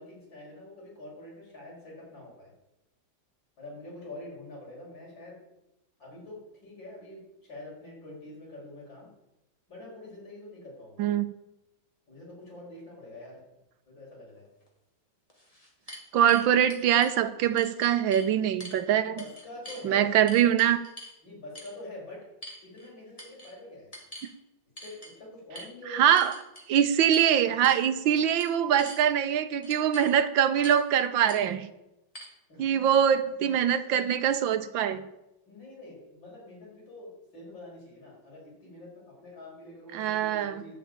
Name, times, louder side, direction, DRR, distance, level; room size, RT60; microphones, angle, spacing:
voice 1, 0.0-2.5 3.6-5.4 6.0-9.1 9.7-11.2 12.1-13.4 13.9-14.5 19.0-20.1 21.2-22.3 22.6-23.9 24.8-26.1 32.5-32.6 35.5-40.7, left 1 dB, 70° left, -3 dB, 5.9 m, -45 dB
sound 1, 14.7-14.8 15.3-17.2 17.6-18.3 18.6-18.8 19.2-19.8 20.3-21.2 21.5-21.8 22.4-22.9 23.2-23.5 23.9-24.3 24.8-25.1 25.5-25.7 26.2-26.7 27.1-27.3 27.6-27.9 28.2-29.0 29.6-30.1 30.6-30.9 31.3-31.4 32.1-32.2, equal, 20° left, 2.6 m, -44 dB
voice 2, 16.1-19.2 19.8-20.8 25.9-26.3 26.7-31.7 32.6-35.0 39.9-40.6, right 9 dB, 80° right, 11 dB, 1.5 m, -23 dB
11.5 x 7.7 x 8.8 m, 0.92 s
omnidirectional pair, 2.1 m